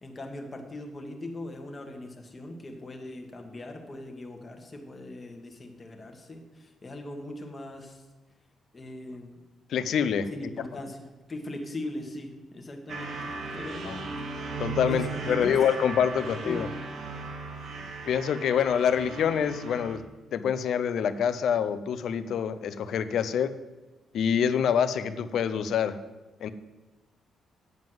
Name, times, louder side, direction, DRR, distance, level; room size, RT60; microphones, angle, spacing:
voice 1, 0.0-8.0 8.7-9.3 10.3-14.1 14.8-15.6 16.3-16.6, left 1 dB, 20° left, 3 dB, 1.4 m, -40 dB
voice 2, 9.7-10.5 13.9-14.0 14.6-16.7 18.1-20.0 20.3-23.5 24.1-26.0 26.4-26.5, left 8 dB, 60° left, 12 dB, 0.7 m, -26 dB
sound 1, 12.9-20.0, right 3 dB, 55° right, 1.5 m, -37 dB
9.4 x 7.3 x 7.8 m, 1.1 s
cardioid pair, 175°, 0 cm